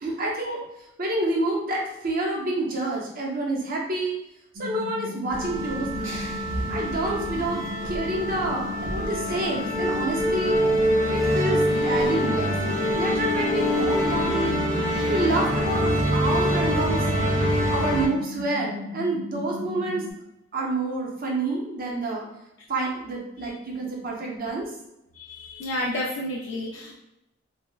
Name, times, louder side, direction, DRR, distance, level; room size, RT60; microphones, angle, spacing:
voice 1, 0.0-0.6 1.0-4.2 4.6-6.2 6.7-10.6 11.1-14.5 15.1-17.0 17.3-17.4 17.7-20.0 20.5-22.3 22.7-24.7, right 2 dB, 45° right, -1 dB, 0.6 m, -28 dB
sound 1, 4.5-20.1, left 4 dB, 85° right, 0.6 m, -36 dB
sound 2, 5.3-18.1, equal, 70° right, 1.0 m, -25 dB
voice 2, 25.1-26.9, left 1 dB, 60° left, -3 dB, 0.3 m, -31 dB
3.2 x 2.0 x 2.3 m, 0.88 s
head